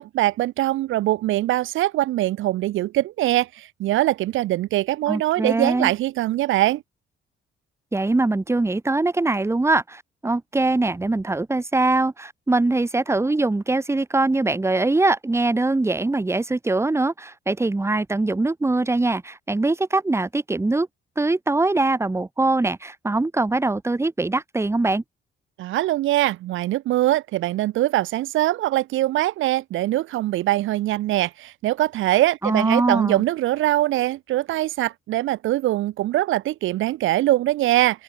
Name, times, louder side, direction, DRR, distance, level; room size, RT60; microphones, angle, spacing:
voice 1, 0.0-6.8 25.6-38.0, right 15 dB, 80° right, 0.7 m, -22 dB
voice 2, 5.1-5.9 7.9-20.9 21.2-25.0 32.4-33.2, right 2 dB, 15° right, 1.3 m, -22 dB
open air
cardioid pair, 90°, 20 cm